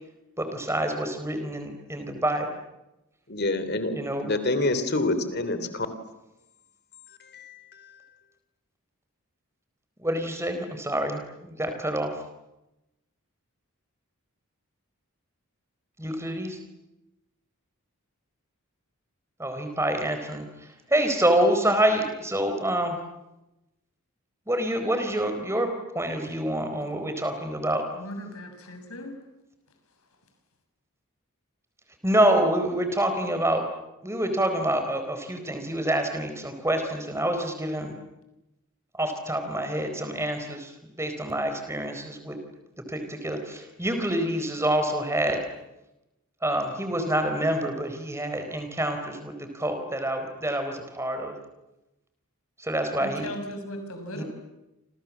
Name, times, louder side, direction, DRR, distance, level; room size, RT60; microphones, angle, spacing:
voice 1, 0.4-2.5 3.9-4.3 10.0-12.1 16.0-16.6 19.4-23.0 24.5-27.8 32.0-33.6 34.0-37.9 38.9-42.4 42.9-45.4 46.4-51.3 52.6-53.3 54.2-54.3, right 1 dB, 10° right, 7 dB, 4.1 m, -27 dB
voice 2, 3.3-5.9 7.1-8.1, left 2 dB, 45° left, 11 dB, 3.1 m, -28 dB
voice 3, 27.9-29.2 53.0-54.2, equal, 75° left, 5 dB, 6.8 m, -37 dB
28.5 x 27.5 x 7.4 m, 0.95 s
head